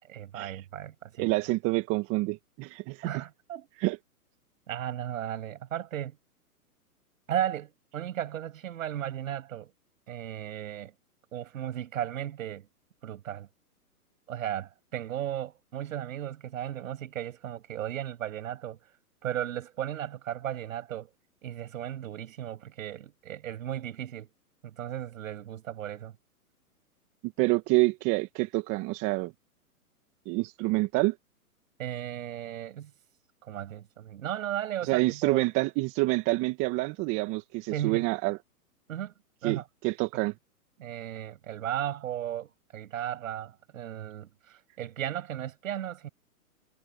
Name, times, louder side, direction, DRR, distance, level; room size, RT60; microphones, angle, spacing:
voice 1, 0.0-1.3 3.0-3.7 4.7-6.2 7.3-9.7 10.1-10.9 11.3-12.7 13.0-13.5 14.3-18.8 19.2-21.1 21.4-24.3 24.6-26.2 31.8-32.9 33.4-35.5 37.7-38.1 38.9-39.1 39.4-39.6 40.8-46.1, right 11 dB, 60° right, 7.6 m, -35 dB
voice 2, 1.2-3.1 3.8-4.0 27.2-29.3 30.3-31.1 34.8-38.4 39.4-40.3, right 23 dB, 30° right, 2.0 m, -27 dB
hypercardioid pair, 130°, 45 cm